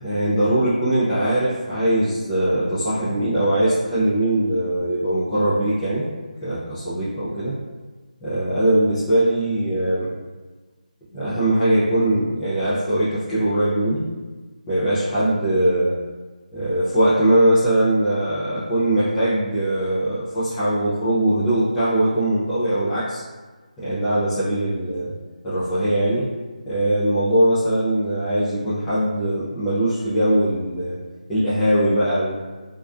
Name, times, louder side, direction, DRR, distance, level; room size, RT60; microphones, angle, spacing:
voice 1, 0.0-6.0 6.4-7.6 8.2-10.1 11.1-14.0 14.7-16.0 16.5-23.2 23.8-25.1 25.4-26.3 26.7-31.0 31.3-32.4, right 1 dB, 10° left, -14 dB, 0.3 m, -21 dB
2.4 x 2.3 x 2.3 m, 1.3 s
figure-of-eight pair, 170°, 4 cm